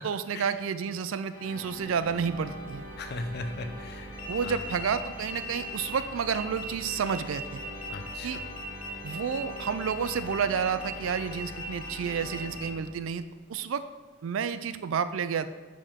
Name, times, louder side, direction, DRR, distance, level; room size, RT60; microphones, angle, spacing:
voice 1, 0.0-2.9 4.3-7.6 8.2-8.4 9.0-13.2 13.5-13.8 14.2-15.5, right 6 dB, 75° right, 13 dB, 0.4 m, -30 dB
sound 1, 1.3-13.2, equal, 25° left, 1.7 m, -43 dB
voice 2, 3.0-4.1 4.4-4.6 7.9-8.4, left 2 dB, 55° left, 7 dB, 0.6 m, -37 dB
sound 2, 4.1-12.6, left 3 dB, 80° left, 1.3 m, -41 dB
6.8 x 5.2 x 3.6 m, 1.3 s
head